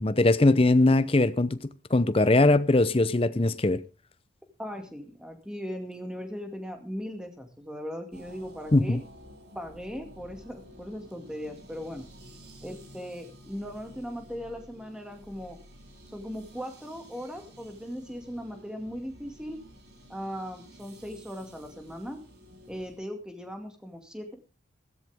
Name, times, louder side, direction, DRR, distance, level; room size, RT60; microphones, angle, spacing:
voice 1, 0.0-1.6 1.9-3.8 8.7-9.0, left 2 dB, 30° left, 0.6 m, -21 dB
voice 2, 4.6-9.0 9.5-12.1 12.6-15.6 16.1-19.6 20.1-22.2 22.7-24.3, equal, 5° right, 2.2 m, -38 dB
sound 1, 8.1-23.0, equal, 60° right, 5.8 m, -52 dB
15.5 x 14.0 x 3.6 m
head